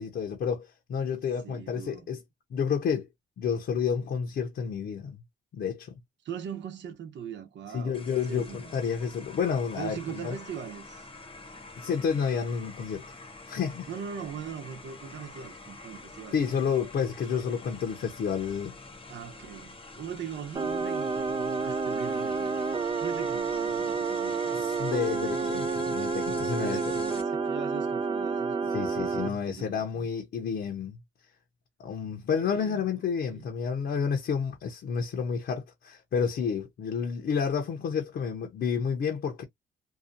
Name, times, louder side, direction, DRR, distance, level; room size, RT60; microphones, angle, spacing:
voice 1, 0.0-2.2 2.5-3.1 3.4-5.2 5.5-5.9 7.7-10.4 11.8-13.0 13.5-13.9 16.3-18.7 24.5-26.8 28.7-31.0 31.8-39.4, left 6 dB, 60° left, 0.9 m, -30 dB
voice 2, 1.4-2.1 6.2-8.8 9.8-11.1 13.9-16.4 19.1-24.6 25.3-25.6 26.6-30.1 32.4-33.5, right 8 dB, 65° right, 0.9 m, -41 dB
sound 1, 7.9-27.2, left 3 dB, 25° left, 0.9 m, -46 dB
sound 2, 20.6-29.3, right 4 dB, 25° right, 0.5 m, -29 dB
2.8 x 2.3 x 2.5 m
cardioid pair, 90°, 20 cm